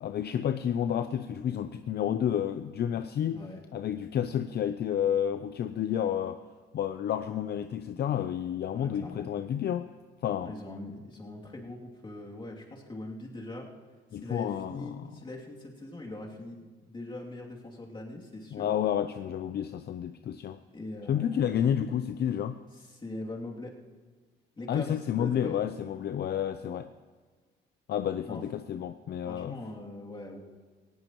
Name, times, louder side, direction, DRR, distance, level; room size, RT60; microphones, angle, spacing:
voice 1, 0.0-3.4 3.7-6.4 6.7-9.9 10.2-10.5 14.1-15.1 18.5-20.6 21.1-22.6 24.7-26.9 27.9-29.6, left 9 dB, 55° left, 10 dB, 0.5 m, -30 dB
voice 2, 8.7-9.3 10.4-13.7 14.2-18.7 20.7-21.7 22.7-23.7 24.5-25.6 28.2-28.4 29.3-30.4, left 2 dB, 25° left, -2 dB, 2.8 m, -42 dB
18.5 x 16.5 x 3.1 m, 1.4 s
cardioid pair, 90°, 20 cm